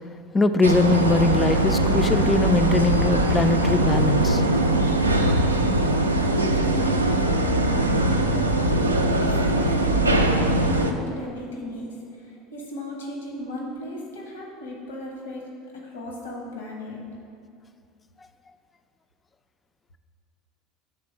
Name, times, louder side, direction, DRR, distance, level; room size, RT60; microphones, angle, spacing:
voice 1, 0.3-4.4, left 3 dB, 20° left, 9 dB, 0.3 m, -21 dB
sound 1, 0.6-10.9, right 1 dB, 90° right, 0.3 m, -21 dB
voice 2, 6.4-7.2 8.7-15.5 15.7-17.0, equal, 75° left, -1 dB, 1.0 m, -36 dB
6.5 x 3.6 x 4.4 m, 2.4 s
figure-of-eight pair, 75°, 0 cm